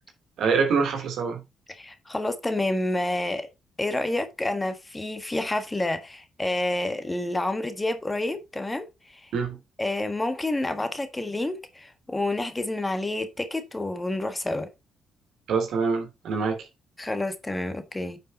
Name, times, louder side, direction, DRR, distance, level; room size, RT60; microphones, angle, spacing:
voice 1, 0.4-1.4 9.3-9.6 15.5-16.7, right 5 dB, 75° right, 2.9 m, -25 dB
voice 2, 1.7-3.5 3.8-9.3 9.8-14.7 17.0-18.2, left 2 dB, 15° left, 1.5 m, -29 dB
9.3 x 5.5 x 4.1 m
cardioid pair, 90°, 0 cm